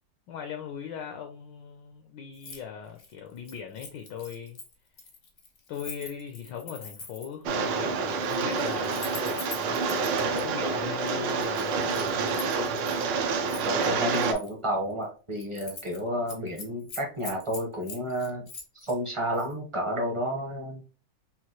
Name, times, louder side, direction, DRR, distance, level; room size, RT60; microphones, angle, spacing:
voice 1, 0.3-4.6 5.7-9.8 10.3-12.3, left 7 dB, 70° left, 5 dB, 1.1 m, -39 dB
Keys jangling, 2.3-2.6 2.9-7.4 8.1-10.4 11.1-13.0 13.5-14.5 14.9-15.1 15.4-16.0 16.3-19.0 19.3-19.5, left 4 dB, 50° left, 0.7 m, -44 dB
Rain, 7.5-14.3, right 4 dB, 70° right, 1.1 m, -28 dB
voice 2, 13.6-18.4 18.8-20.8, equal, 25° right, 0 dB, 0.6 m, -31 dB
5.7 x 2.6 x 2.9 m, 0.36 s
omnidirectional pair, 2.4 m